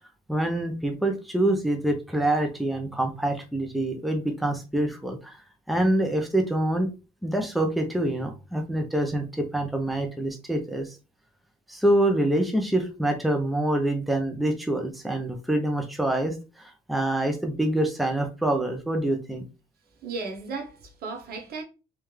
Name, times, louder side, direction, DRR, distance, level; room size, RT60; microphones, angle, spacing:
voice 1, 0.3-5.4 5.7-6.9 7.2-11.0 11.7-19.4, right 1 dB, ahead, 0.8 m, -26 dB
voice 2, 20.0-21.6, right 4 dB, 65° right, 1.2 m, -35 dB
3.4 x 3.4 x 3.2 m
cardioid pair, 110°, 17 cm